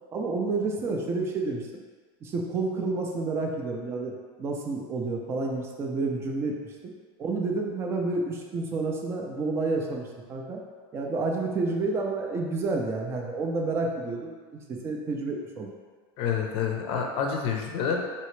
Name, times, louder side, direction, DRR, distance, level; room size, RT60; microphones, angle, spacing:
voice 1, 0.1-1.7 2.2-6.7 7.2-10.6 10.9-14.3 14.7-15.7, right 3 dB, 20° right, 1 dB, 0.4 m, -29 dB
voice 2, 16.2-18.0, left 6 dB, 45° left, 2 dB, 0.5 m, -28 dB
4.2 x 2.8 x 3.1 m, 1.5 s
supercardioid pair, 165°, 12 cm